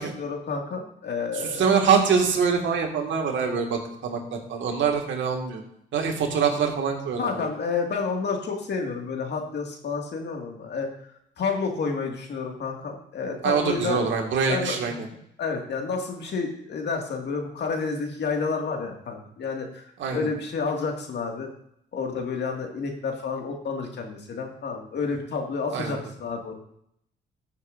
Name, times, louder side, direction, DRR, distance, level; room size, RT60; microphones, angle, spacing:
voice 1, 0.0-1.7 6.3-6.5 7.2-10.9 11.4-14.0 14.5-15.0 15.4-21.5 21.9-26.5, left 4 dB, 60° left, 2 dB, 2.1 m, -30 dB
voice 2, 1.4-5.6 5.9-7.5 13.4-15.0 20.0-20.3 25.7-26.0, right 6 dB, 70° right, 2 dB, 2.0 m, -24 dB
14.0 x 7.0 x 2.6 m, 0.71 s
cardioid pair, 90°, 20 cm